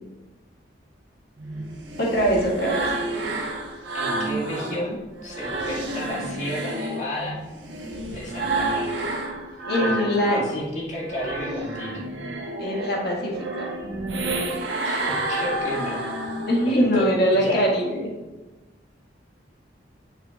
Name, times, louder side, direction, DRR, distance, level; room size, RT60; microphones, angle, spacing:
sound 1, 1.4-4.8 5.2-10.6 10.9-16.8, right 2 dB, 85° right, 1.2 m, -30 dB
voice 1, 2.0-2.9 9.6-10.4 12.6-13.6 16.5-18.1, equal, 60° left, -3 dB, 1.9 m, -22 dB
voice 2, 3.9-7.4 8.1-9.1 9.8-12.0 14.8-16.0 16.3-17.7, left 1 dB, 40° left, -5 dB, 2.1 m, -32 dB
7.2 x 6.6 x 2.5 m, 1.2 s
head